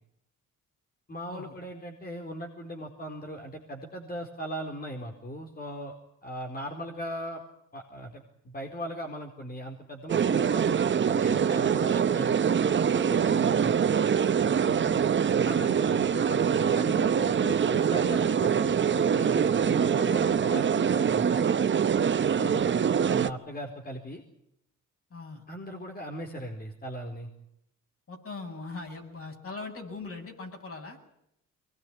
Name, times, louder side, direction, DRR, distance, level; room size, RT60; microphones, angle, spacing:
voice 1, 1.1-5.9 6.2-7.4 7.7-12.4 12.9-13.7 15.4-21.5 23.1-24.2 25.5-27.3, equal, 30° left, 2 dB, 4.2 m, -38 dB
sound 1, 10.1-23.3, right 7 dB, 40° right, 0.9 m, -24 dB
voice 2, 14.6-15.1 20.2-20.3 22.4-22.7 25.1-25.4 28.1-31.0, left 3 dB, 50° left, 3 dB, 7.9 m, -40 dB
24.0 x 20.5 x 9.6 m, 0.77 s
cardioid pair, 90°, 30 cm